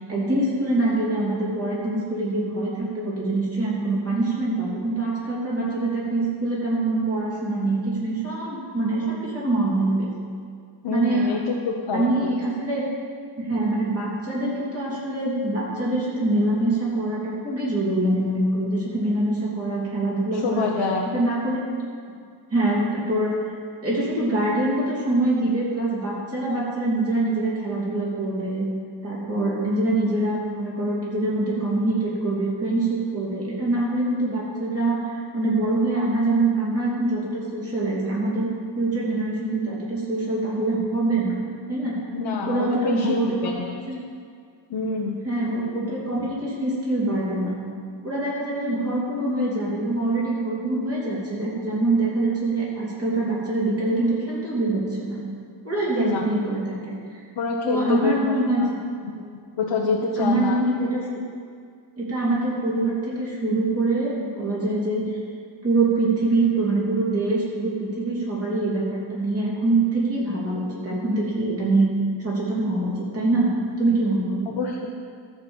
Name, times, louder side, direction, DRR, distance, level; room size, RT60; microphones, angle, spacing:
voice 1, 0.1-10.1 10.9-11.3 11.9-12.8 13.4-20.7 21.1-21.6 22.5-23.4 23.8-28.6 29.0-38.5 38.7-41.4 41.7-42.0 42.5-43.4 43.9-44.0 45.2-47.6 48.0-55.2 55.6-57.3 57.6-58.6 60.2-61.2 62.0-65.0 65.6-71.9 72.2-73.5 73.8-74.5, right 2 dB, 30° right, -6 dB, 3.1 m, -24 dB
voice 2, 10.8-12.3 20.3-21.1 42.1-43.7 44.7-45.2 56.0-56.3 57.4-58.7 59.0-60.6 74.5-74.9, left 4 dB, 60° left, -2 dB, 1.2 m, -27 dB
13.5 x 5.3 x 7.2 m, 2.2 s
wide cardioid pair, 165°, 48 cm